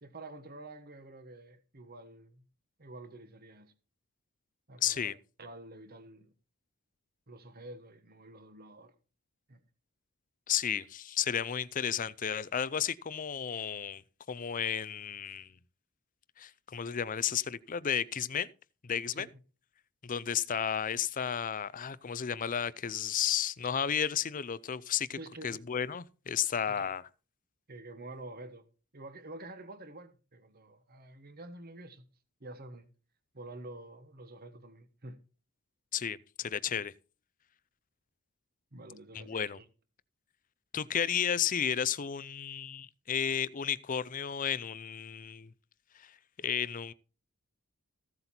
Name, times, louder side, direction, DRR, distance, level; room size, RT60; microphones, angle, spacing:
voice 1, 0.0-2.4 2.8-3.7 4.7-5.1 5.4-6.3 7.3-8.9 9.5-9.6 19.1-19.3 25.2-25.6 26.7-26.9 27.7-28.7 28.9-32.0 32.4-32.9 33.3-35.2 38.7-39.7, right 2 dB, 45° right, 1.4 m, -48 dB
voice 2, 4.8-5.1 10.5-14.0 14.3-15.5 16.4-18.5 18.8-19.3 20.0-25.2 25.4-27.0 35.9-36.9 39.1-39.6 40.7-45.5 46.0-46.1 46.4-46.9, left 8 dB, 35° left, 0.5 m, -33 dB
15.5 x 8.0 x 4.3 m
head